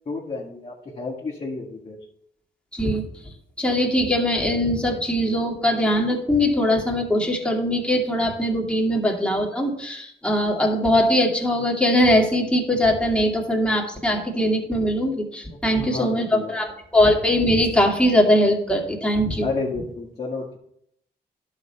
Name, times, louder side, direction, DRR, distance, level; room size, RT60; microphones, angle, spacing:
voice 1, 0.1-2.0 15.8-16.5 19.4-20.6, left 3 dB, 40° left, -4 dB, 1.9 m, -31 dB
voice 2, 2.7-3.0 3.6-19.5, left 1 dB, 5° left, 0 dB, 2.3 m, -21 dB
11.5 x 6.6 x 4.3 m, 0.72 s
cardioid pair, 90°, 18 cm